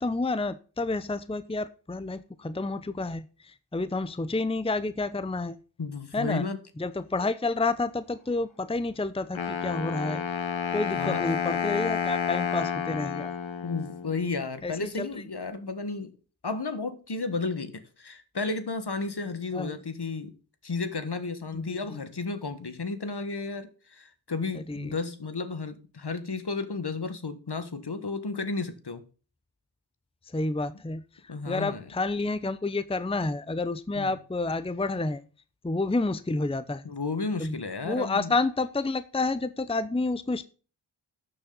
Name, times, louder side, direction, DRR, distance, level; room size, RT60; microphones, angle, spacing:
voice 1, 0.0-5.6 6.1-6.4 6.8-10.3 10.7-13.3 14.6-15.1 19.5-19.8 21.5-21.8 24.5-25.0 30.3-35.2 35.6-36.9 37.4-37.6 37.8-40.4, left 3 dB, 10° left, 0.7 m, -29 dB
voice 2, 5.8-6.6 10.9-11.3 13.6-16.1 16.4-20.4 20.6-29.0 31.3-31.8 33.9-34.2 36.8-38.3, left 4 dB, 60° left, 1.6 m, -33 dB
Wind instrument woodwind instrument, 9.3-14.3, left 7 dB, 80° left, 1.3 m, -30 dB
12.5 x 7.1 x 3.9 m
wide cardioid pair, 40°, 45 cm